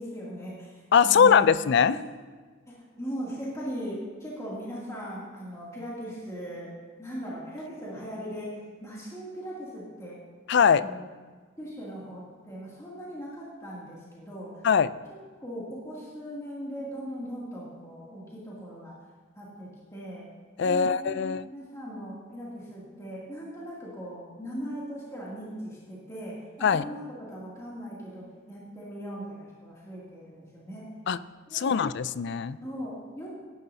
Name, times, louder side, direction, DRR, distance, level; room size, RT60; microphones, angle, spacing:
voice 1, 0.0-1.5 1.8-2.0 2.7-6.7 7.0-10.2 10.8-11.1 11.6-14.6 15.4-19.0 19.3-20.3 20.6-30.9 31.5-31.8 32.6-33.3, equal, 15° left, -7 dB, 2.6 m, -39 dB
voice 2, 0.9-1.9 10.5-10.9 14.6-14.9 20.6-21.4 26.6-26.8 31.1-31.2 31.5-32.6, left 7 dB, 55° left, 16 dB, 0.4 m, -21 dB
17.5 x 11.0 x 2.8 m, 1.5 s
head